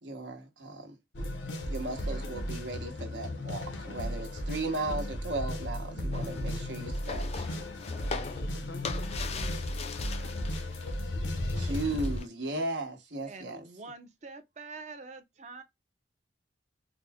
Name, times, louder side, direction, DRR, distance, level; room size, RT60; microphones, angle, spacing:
voice 1, 0.0-1.0 1.7-7.5 11.6-13.6, right 2 dB, 75° right, 1.1 m, -36 dB
sound 1, 1.1-12.2, left 1 dB, 90° left, 0.9 m, -35 dB
sound 2, 6.1-11.0 11.2-12.3, left 5 dB, 35° left, 0.4 m, -41 dB
voice 2, 8.0-11.5, left 2 dB, 60° left, 0.7 m, -51 dB
voice 3, 13.3-15.6, right 3 dB, 40° right, 0.6 m, -45 dB
4.0 x 2.1 x 3.4 m
head